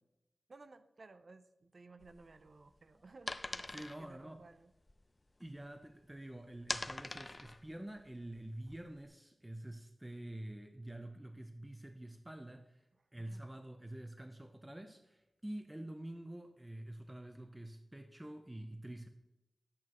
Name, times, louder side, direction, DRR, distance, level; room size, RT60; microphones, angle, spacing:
voice 1, 0.5-4.7 13.2-13.4, right 3 dB, 60° right, 11 dB, 0.5 m, -57 dB
sound 1, 2.0-6.0 6.3-9.1, left 2 dB, 30° left, 0.4 m, -44 dB
voice 2, 3.7-4.4 5.4-12.8 13.1-19.1, right 1 dB, 15° right, 6 dB, 0.6 m, -47 dB
11.0 x 8.5 x 3.0 m, 0.95 s
wide cardioid pair, 70°, 0 cm